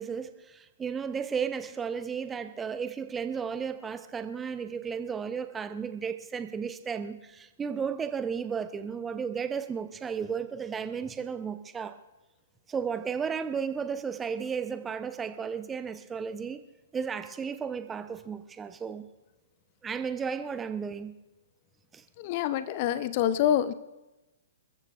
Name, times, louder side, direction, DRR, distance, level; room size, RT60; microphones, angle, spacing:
voice 1, 0.0-12.0 12.7-16.6 16.9-19.0 19.8-21.1 21.9-22.0, right 6 dB, 15° right, 11 dB, 0.7 m, -34 dB
voice 2, 22.2-23.7, left 11 dB, 40° left, 15 dB, 0.6 m, -26 dB
29.0 x 14.0 x 2.5 m, 1.1 s
figure-of-eight pair, 115°, 0 cm